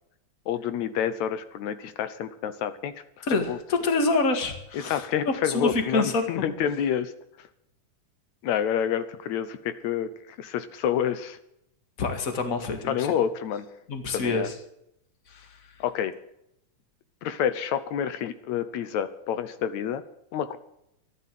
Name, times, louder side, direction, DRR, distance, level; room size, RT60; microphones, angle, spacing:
voice 1, 0.5-3.0 3.4-3.6 4.7-7.1 7.4-7.5 8.4-11.4 12.9-13.7 14.1-14.5 15.8-16.1 17.2-20.0 20.3-20.6, left 9 dB, 75° left, 13 dB, 2.0 m, -28 dB
voice 2, 3.2-6.2 12.0-13.2 13.9-14.5 15.3-15.7, left 3 dB, 30° left, 6 dB, 1.9 m, -27 dB
14.0 x 11.0 x 7.6 m, 0.78 s
omnidirectional pair, 3.5 m